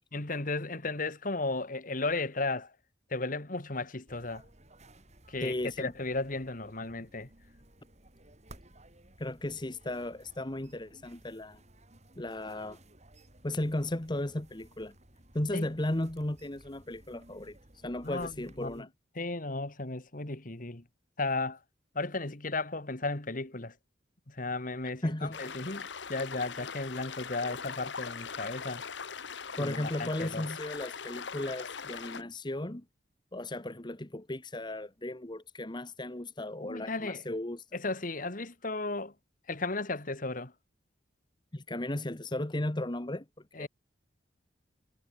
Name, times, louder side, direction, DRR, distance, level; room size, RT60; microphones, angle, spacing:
voice 1, 0.1-2.7 3.1-4.4 5.3-7.3 15.5-15.7 18.0-18.3 18.6-18.8 19.2-20.8 21.2-21.6 22.0-23.7 24.3-28.8 29.6-30.5 36.6-37.2 37.7-39.1 39.5-40.5 43.6-43.7, left 3 dB, 45° left, 2.0 m, -35 dB
sound 1, 4.1-18.8, right 1 dB, 40° right, 7.8 m, -57 dB
voice 2, 5.4-5.9 9.2-11.6 12.2-12.8 13.4-14.9 15.3-17.6 17.8-18.9 25.0-25.4 29.6-32.8 33.3-37.7 41.5-43.2 43.6-43.7, left 1 dB, 25° left, 1.3 m, -35 dB
sound 2, 25.3-32.2, left 6 dB, 75° left, 1.3 m, -41 dB
head